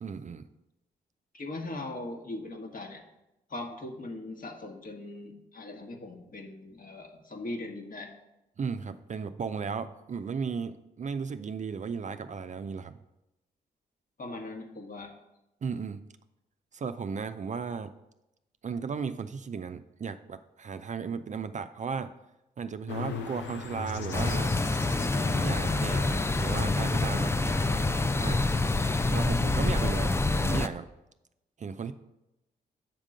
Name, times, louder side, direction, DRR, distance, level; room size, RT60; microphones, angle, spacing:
voice 1, 0.0-0.5 8.6-13.0 15.6-16.0 16.7-17.9 18.6-22.1 22.6-24.5 25.4-27.3 28.2-28.4 29.0-30.9 31.6-31.9, right 5 dB, 40° right, 10 dB, 0.4 m, -35 dB
voice 2, 1.3-3.0 3.5-8.1 14.2-15.1, left 2 dB, 45° left, 3 dB, 1.4 m, -40 dB
sound 1, 22.9-29.8, left 5 dB, 80° left, 0.7 m, -41 dB
sound 2, 24.1-30.7, left 2 dB, 15° left, 0.5 m, -27 dB
7.5 x 3.6 x 6.4 m, 0.92 s
supercardioid pair, 45°, 19 cm